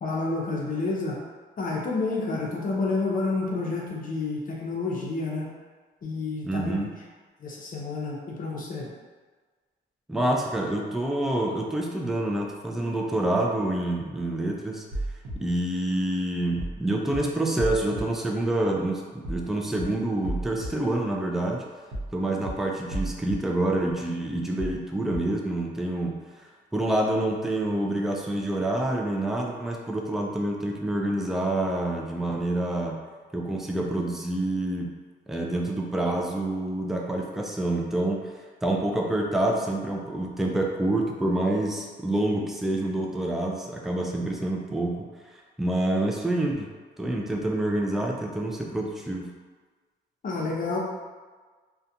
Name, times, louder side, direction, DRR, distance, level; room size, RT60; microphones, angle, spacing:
voice 1, 0.0-1.2 1.6-5.5 6.0-6.8 7.4-8.9 50.2-50.8, left 3 dB, 45° left, -3 dB, 0.6 m, -29 dB
voice 2, 6.4-6.9 10.1-14.8 15.4-21.6 22.1-26.2 26.7-33.0 33.3-34.9 35.3-38.3 38.6-45.1 45.6-46.7 47.0-49.3, right 1 dB, ahead, 0 dB, 0.3 m, -27 dB
sound 1, 14.9-15.3 16.6-16.8 17.1-17.2 17.6-18.0 19.2-19.4 19.7-19.8 20.2-20.7 21.9-22.1 22.4-22.5 22.9-23.3 24.6-24.8 25.1-25.2, right 1 dB, 85° right, 0.7 m, -32 dB
2.4 x 2.2 x 2.7 m, 1.4 s
cardioid pair, 90°, 20 cm